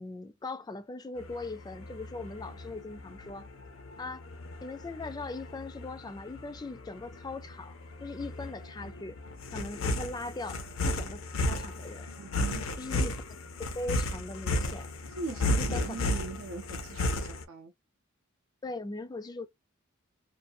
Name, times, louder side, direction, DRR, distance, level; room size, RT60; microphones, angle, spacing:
voice 1, 0.0-3.5 4.0-4.2 4.6-9.2 9.5-12.1 12.8-14.9 15.6-16.0 18.6-19.5, left 2 dB, 20° left, 0.3 m, -40 dB
sound 1, 1.2-17.4, left 1 dB, 75° left, 0.6 m, -34 dB
voice 2, 12.2-12.6 15.2-17.7, right 3 dB, 75° right, 0.5 m, -40 dB
2.6 x 2.3 x 2.5 m
head